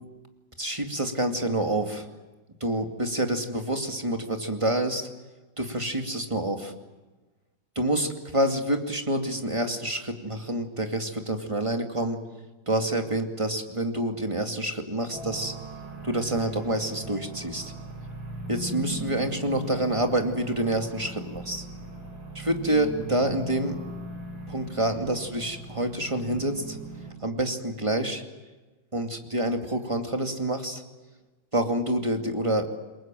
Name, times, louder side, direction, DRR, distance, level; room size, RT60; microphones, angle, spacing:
voice 1, 0.6-2.1 2.6-5.1 5.6-6.7 7.8-12.2 12.7-15.5 16.0-17.7 18.5-21.6 22.3-23.8 24.5-26.8 27.2-28.2 28.9-30.8 31.5-32.8, right 1 dB, 15° right, 4 dB, 2.3 m, -27 dB
sound 1, 15.1-27.1, right 2 dB, 80° right, 6.4 m, -39 dB
28.5 x 22.5 x 7.7 m, 1.2 s
omnidirectional pair, 2.3 m